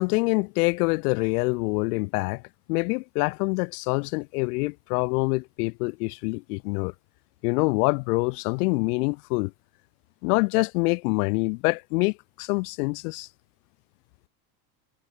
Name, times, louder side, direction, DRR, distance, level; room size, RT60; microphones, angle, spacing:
voice 1, 0.0-2.4 2.7-6.9 7.4-9.5 10.2-13.3, left 27 dB, 75° left, 2.6 m, -25 dB
supercardioid pair, 135°, 45 cm